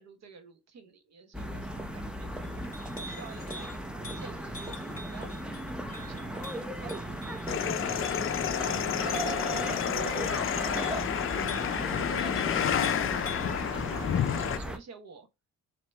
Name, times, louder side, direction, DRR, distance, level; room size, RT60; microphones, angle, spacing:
voice 1, 0.0-3.8 4.1-5.8 6.0-11.1 11.8-15.3, right 5 dB, 60° right, 1.0 m, -48 dB
sound 1, 1.3-14.8, right 1 dB, 5° right, 0.7 m, -36 dB
Chink clink, 2.3-13.6, left 3 dB, 30° left, 2.4 m, -47 dB
sound 2, 7.5-14.6, left 9 dB, 45° left, 0.5 m, -30 dB
7.4 x 2.8 x 2.3 m
cardioid pair, 90°, 30 cm